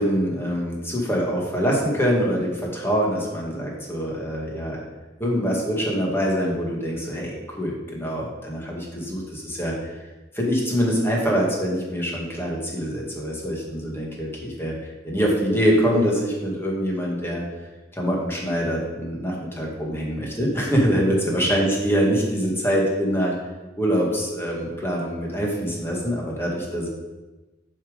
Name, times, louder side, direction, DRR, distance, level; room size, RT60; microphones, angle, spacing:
voice 1, 0.0-4.8 5.2-9.9 10.3-17.4 17.9-23.3 23.8-26.9, equal, 15° left, -3 dB, 1.9 m, -24 dB
7.2 x 5.8 x 5.2 m, 1.1 s
head